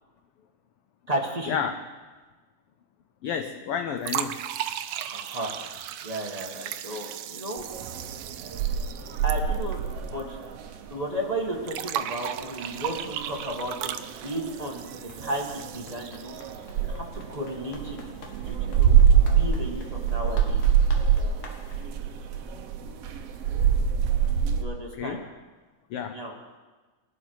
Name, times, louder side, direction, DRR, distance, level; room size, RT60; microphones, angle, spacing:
voice 1, 1.1-1.6 5.1-5.5 6.0-7.6 9.2-10.4 10.9-14.8 15.2-16.3 16.8-18.0 18.5-19.0 19.2-20.7 24.6-25.2 26.1-26.3, right 1 dB, 20° right, -1 dB, 1.2 m, -33 dB
voice 2, 3.2-4.4 25.0-25.3 25.9-26.2, left 7 dB, 85° left, 8 dB, 1.3 m, -30 dB
sound 1, 4.0-10.2 10.5-10.6 11.7-16.7, right 10 dB, 90° right, 1.2 m, -36 dB
sound 2, 7.6-24.6, right 8 dB, 65° right, 1.8 m, -26 dB
Run, 15.0-21.9, left 3 dB, 55° left, 2.0 m, -48 dB
20.0 x 11.5 x 4.7 m, 1.3 s
omnidirectional pair, 3.4 m